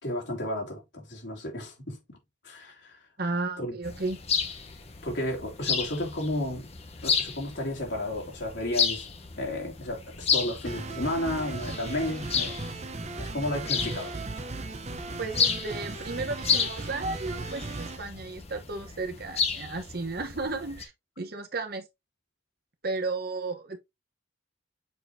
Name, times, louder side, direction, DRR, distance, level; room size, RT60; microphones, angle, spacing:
voice 1, 0.0-2.2 2.4-3.0 3.6-3.8 5.0-6.7 7.0-9.1 9.4-12.6 13.2-14.3, left 1 dB, 70° left, 2.7 m, -32 dB
voice 2, 3.2-4.2 15.2-20.9 21.2-21.8 22.8-23.8, right 3 dB, 55° right, 1.1 m, -33 dB
sound 1, 3.8-20.9, left 6 dB, 35° left, 1.0 m, -32 dB
sound 2, 10.6-18.0, right 3 dB, 35° right, 0.8 m, -37 dB
6.8 x 5.1 x 2.7 m
head